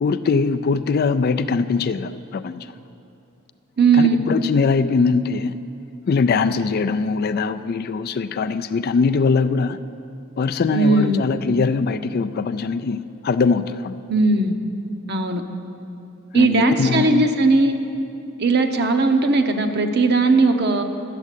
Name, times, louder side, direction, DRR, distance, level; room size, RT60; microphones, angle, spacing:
voice 1, 0.0-2.7 3.9-5.6 6.1-9.8 10.4-14.0 16.3-17.3, left 4 dB, 45° left, 11 dB, 0.3 m, -21 dB
voice 2, 3.8-4.2 10.7-11.2 14.1-14.6 15.1-15.4 16.3-17.7 18.4-20.8, right 3 dB, 50° right, 6 dB, 0.8 m, -18 dB
11.5 x 7.5 x 8.2 m, 2.6 s
head